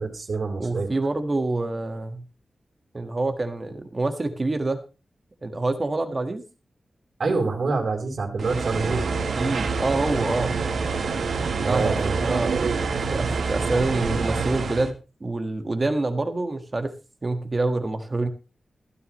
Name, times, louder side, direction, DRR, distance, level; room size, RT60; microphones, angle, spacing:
voice 1, 0.0-0.9 7.2-9.1 11.6-12.2, right 3 dB, 55° right, 3 dB, 4.5 m, -26 dB
voice 2, 0.6-2.2 2.9-4.8 5.4-6.4 9.3-10.6 11.6-14.9 15.2-16.9 17.2-18.3, right 2 dB, 30° right, 8 dB, 1.6 m, -26 dB
sound 1, 8.4-14.9, right 4 dB, 85° right, 2.0 m, -26 dB
15.5 x 13.0 x 3.1 m, 0.32 s
wide cardioid pair, 160°, 0 cm